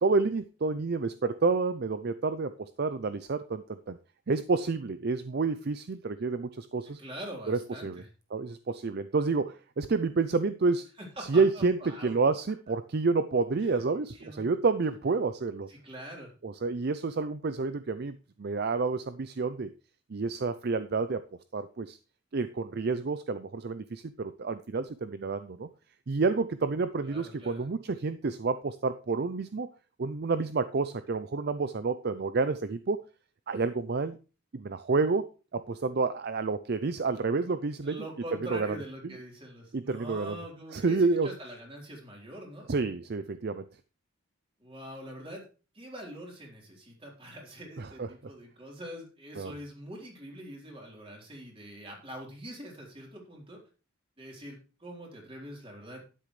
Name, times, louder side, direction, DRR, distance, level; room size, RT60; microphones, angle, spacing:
voice 1, 0.0-4.0 4.3-7.0 7.5-8.0 8.3-10.9 11.3-11.8 12.0-15.7 16.4-19.7 20.1-21.2 21.5-22.0 22.3-25.7 26.1-29.7 30.0-33.0 33.5-34.2 34.5-35.3 35.5-38.0 38.5-38.7 39.7-40.4 40.7-41.3 42.7-43.7 47.8-48.1 49.4-49.5, right 4 dB, 50° right, 12 dB, 0.5 m, -29 dB
voice 2, 6.8-8.1 11.0-12.1 13.6-13.8 14.1-14.5 15.7-16.3 27.0-27.6 37.8-42.7 44.6-45.4 45.7-53.6 54.2-56.0, right 1 dB, 25° right, -1 dB, 3.9 m, -44 dB
12.0 x 9.9 x 3.2 m, 0.33 s
head